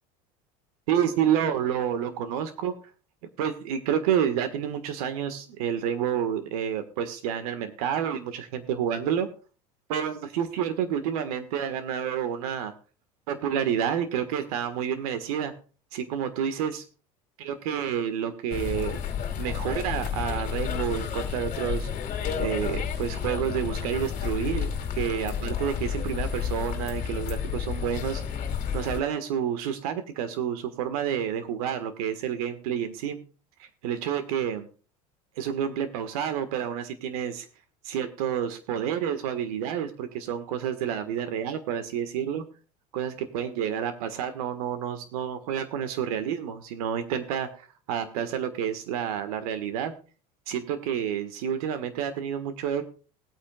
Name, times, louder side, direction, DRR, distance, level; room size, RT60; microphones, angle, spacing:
voice 1, 0.9-2.7 3.4-9.3 9.9-12.7 13.3-15.5 15.9-16.8 17.4-19.0 19.4-21.9 22.4-28.2 28.7-33.2 33.6-34.7 35.4-37.4 37.8-42.4 42.9-49.9 50.5-52.8, right 9 dB, 75° right, 10 dB, 1.6 m, -29 dB
sound 1, 18.5-29.0, left 8 dB, 45° left, 2.2 m, -31 dB
19.5 x 8.7 x 2.4 m, 0.35 s
hypercardioid pair, 85°, 19 cm